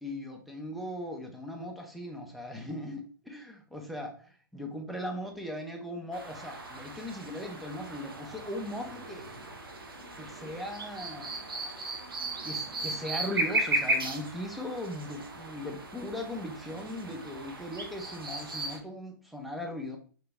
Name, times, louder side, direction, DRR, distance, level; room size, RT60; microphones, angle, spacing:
voice 1, 0.0-9.4 10.2-11.3 12.4-20.0, left 1 dB, ahead, 1 dB, 0.8 m, -38 dB
sound 1, 6.1-18.8, right 2 dB, 90° right, 0.8 m, -36 dB
3.3 x 2.9 x 3.5 m, 0.41 s
hypercardioid pair, 110°, 12 cm